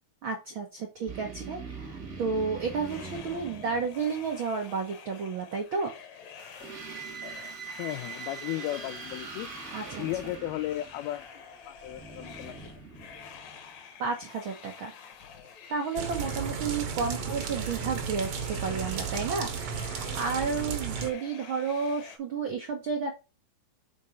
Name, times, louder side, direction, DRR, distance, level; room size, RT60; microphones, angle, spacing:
voice 1, 0.2-5.9 9.7-10.1 14.0-14.9 15.7-23.1, right 5 dB, 85° right, 1.1 m, -32 dB
sound 1, 1.1-4.3 6.4-13.7, right 5 dB, 45° right, 1.1 m, -43 dB
sound 2, 2.6-22.2, left 7 dB, 60° left, 2.1 m, -48 dB
voice 2, 7.8-9.5 10.0-12.6 17.1-17.3, left 15 dB, 90° left, 2.4 m, -35 dB
sound 3, 16.0-21.1, right 6 dB, 65° right, 1.6 m, -34 dB
6.3 x 4.1 x 5.1 m
omnidirectional pair, 4.3 m